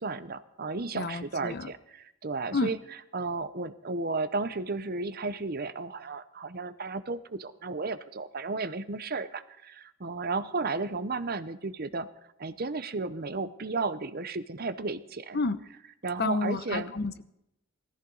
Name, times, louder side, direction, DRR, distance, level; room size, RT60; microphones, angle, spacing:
voice 1, 0.0-2.8 3.1-12.1 12.4-15.4 16.0-17.0, right 3 dB, 45° right, 12 dB, 0.8 m, -33 dB
voice 2, 0.9-1.7 2.5-2.7 15.3-15.6 16.2-17.2, left 3 dB, 50° left, 12 dB, 0.8 m, -30 dB
19.5 x 14.5 x 4.0 m, 0.81 s
head